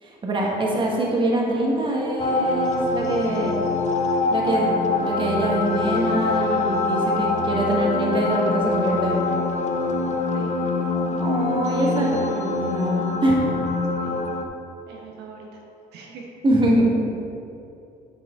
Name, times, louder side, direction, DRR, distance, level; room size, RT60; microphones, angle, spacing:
voice 1, 0.0-3.5 4.3-9.2 11.2-13.4 16.4-16.9, right 1 dB, 30° right, -2 dB, 1.5 m, -24 dB
sound 1, 2.2-14.4, left 3 dB, 45° left, 0.6 m, -24 dB
voice 2, 11.7-12.3 14.0-14.2 14.9-15.6 15.9-16.3, right 4 dB, 80° right, -1 dB, 1.2 m, -39 dB
8.8 x 6.0 x 3.7 m, 2.7 s
cardioid pair, 110°, 17 cm